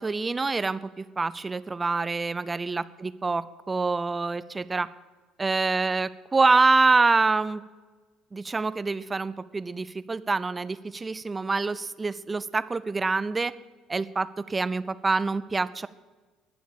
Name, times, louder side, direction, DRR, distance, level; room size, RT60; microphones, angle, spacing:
voice 1, 0.0-4.9 5.4-7.6 8.3-13.5 13.9-15.9, right 3 dB, 20° right, 16 dB, 0.6 m, -26 dB
20.0 x 7.2 x 8.7 m, 1.3 s
figure-of-eight pair, 55°, 0 cm